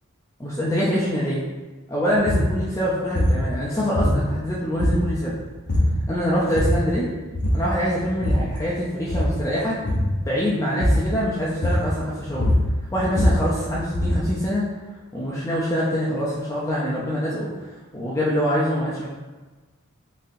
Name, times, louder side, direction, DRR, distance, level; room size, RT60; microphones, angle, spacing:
voice 1, 0.4-1.4 1.9-5.4 6.1-7.1 7.5-9.8 10.2-12.5 12.9-14.6 15.1-17.7 17.9-19.1, equal, 15° left, -7 dB, 0.5 m, -24 dB
sound 1, 2.3-2.5 3.1-3.4 3.9-4.5 4.8-5.3 5.7-6.0 6.4-6.9 7.3-7.7 8.0-8.6 9.0-9.4 9.8-10.2 10.8-11.1 11.6-12.0 12.3-14.3, left 1 dB, 50° left, 0.7 m, -22 dB
3.9 x 2.7 x 2.6 m, 1.2 s
head